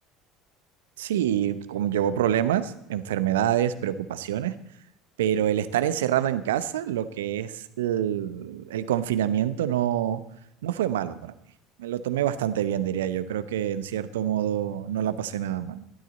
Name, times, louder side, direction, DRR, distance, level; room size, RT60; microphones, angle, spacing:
voice 1, 1.0-4.5 5.2-10.2 10.6-11.3 11.8-15.8, right 11 dB, 75° right, 14 dB, 0.8 m, -26 dB
15.0 x 12.0 x 4.1 m, 0.79 s
figure-of-eight pair, 65°, 0 cm